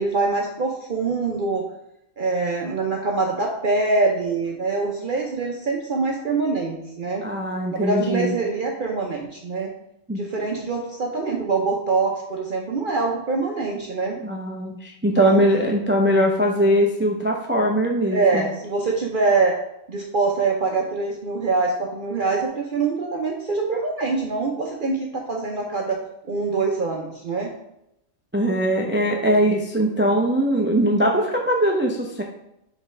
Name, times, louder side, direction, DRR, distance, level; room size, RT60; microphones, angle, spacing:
voice 1, 0.0-1.6 2.2-7.2 7.7-9.7 10.1-14.2 15.2-15.4 18.1-19.5 19.9-26.0 26.3-27.5, right 3 dB, 50° right, 0 dB, 0.7 m, -24 dB
voice 2, 7.2-8.3 10.1-10.2 14.2-18.5 28.3-32.2, equal, 15° right, 0 dB, 0.4 m, -21 dB
5.2 x 3.8 x 4.8 m, 0.83 s
omnidirectional pair, 1.3 m